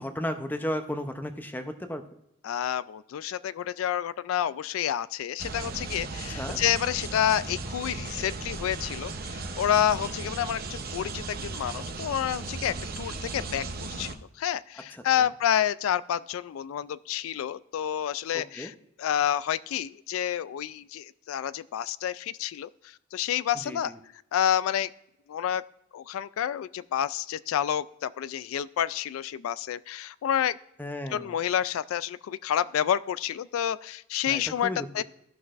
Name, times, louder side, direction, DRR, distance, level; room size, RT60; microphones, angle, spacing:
voice 1, 0.0-2.0 6.3-6.6 18.3-18.7 23.6-24.0 30.8-31.3 34.3-35.0, left 1 dB, 10° left, 7 dB, 0.6 m, -34 dB
voice 2, 2.4-13.6 14.0-23.9 24.3-24.9 25.3-25.6 25.9-30.6 31.1-35.0, left 10 dB, 85° left, 17 dB, 0.3 m, -29 dB
sound 1, 5.4-14.1, right 3 dB, 45° right, 0.8 m, -36 dB
14.5 x 6.0 x 2.5 m, 0.81 s
head